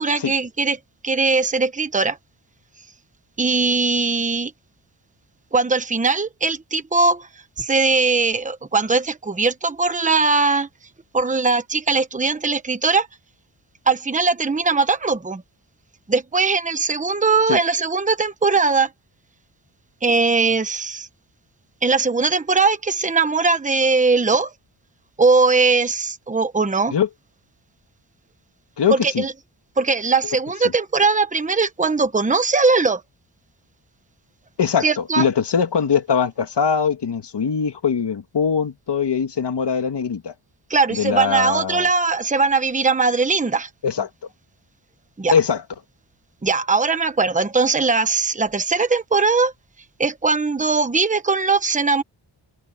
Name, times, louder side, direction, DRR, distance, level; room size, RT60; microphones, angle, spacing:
voice 1, 0.0-2.2 3.4-4.5 5.5-7.3 7.6-10.7 11.1-13.1 13.9-15.4 16.1-18.9 20.0-21.1 21.8-24.5 25.2-26.9 28.9-29.3 29.8-33.0 34.8-35.2 40.7-43.7 45.2-45.3 46.4-49.5 50.0-52.0, right 4 dB, 15° right, 1.1 m, -20 dB
voice 2, 28.8-29.2 34.6-40.3 40.9-41.9 43.8-44.1 45.3-45.6, left 7 dB, 55° left, 2.0 m, -21 dB
open air
wide cardioid pair, 160°, 49 cm